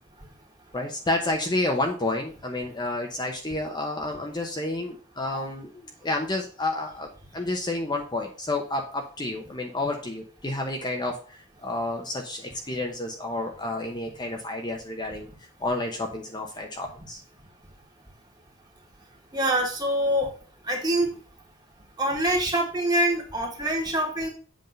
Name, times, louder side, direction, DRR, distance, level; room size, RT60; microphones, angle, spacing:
voice 1, 0.7-15.3 15.6-17.2, left 2 dB, 20° left, 1 dB, 0.9 m, -30 dB
voice 2, 19.3-20.3 20.6-21.2 22.0-24.3, right 1 dB, 20° right, 0 dB, 1.9 m, -25 dB
7.9 x 3.7 x 5.2 m, 0.38 s
head